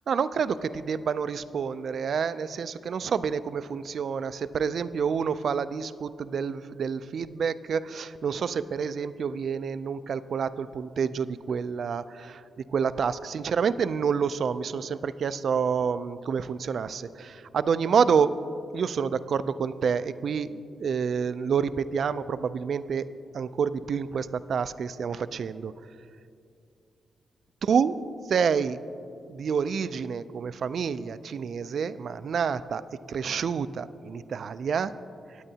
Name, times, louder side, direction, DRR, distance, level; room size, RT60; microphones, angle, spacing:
voice 1, 0.1-12.4 12.7-18.4 18.7-23.1 23.3-25.7 27.6-28.0 28.3-28.8 29.3-32.8 33.1-34.9, right 6 dB, 60° right, 14 dB, 0.3 m, -28 dB
17.5 x 8.9 x 2.8 m, 2.5 s
cardioid pair, 120°, 0 cm